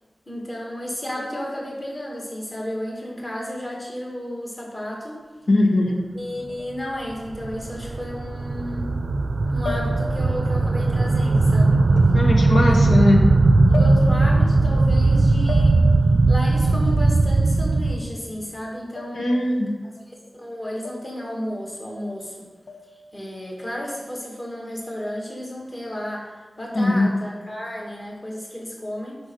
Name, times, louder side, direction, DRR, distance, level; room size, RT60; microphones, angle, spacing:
voice 1, 0.3-5.2 6.1-8.9 9.5-11.8 12.7-12.8 13.7-15.8 16.3-19.4 19.8-22.5 23.1-29.2, equal, 25° left, -2 dB, 2.0 m, -33 dB
voice 2, 5.5-6.0 12.1-13.2 19.1-19.7 26.7-27.1, left 1 dB, 90° left, 0 dB, 1.5 m, -19 dB
sound 1, 6.6-7.0 8.2-8.3 9.6-10.4 12.0-12.2 13.7-14.4 15.5-16.2 19.0-19.5 20.8-21.3 22.7-23.1, left 3 dB, 60° left, 1.1 m, -35 dB
sound 2, 7.1-18.0, right 2 dB, 60° right, 0.5 m, -18 dB
10.0 x 5.4 x 4.7 m, 1.3 s
wide cardioid pair, 85°, 0 cm